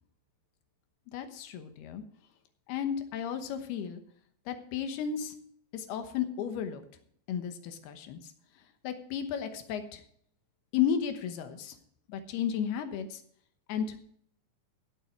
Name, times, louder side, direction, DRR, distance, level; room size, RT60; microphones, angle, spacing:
voice 1, 1.1-2.0 2.7-4.0 4.5-5.3 5.7-6.8 7.3-8.2 8.8-10.0 10.7-11.8 12.1-13.2 13.7-14.0, left 8 dB, 75° left, 7 dB, 2.9 m, -33 dB
16.5 x 7.6 x 4.5 m, 0.64 s
omnidirectional pair, 5.1 m